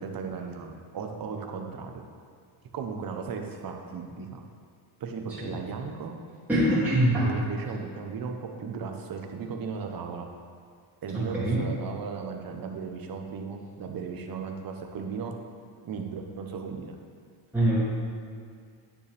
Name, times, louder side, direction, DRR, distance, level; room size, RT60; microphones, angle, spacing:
voice 1, 0.0-2.0 2.7-4.4 5.0-6.2 7.3-10.3 11.0-15.3 15.8-16.9, right 5 dB, 45° right, 3 dB, 1.1 m, -36 dB
voice 2, 6.5-7.3 11.1-11.6 17.5-17.8, right 1 dB, 5° right, -12 dB, 2.5 m, -23 dB
9.8 x 9.6 x 3.5 m, 2.1 s
cardioid pair, 150°, 49 cm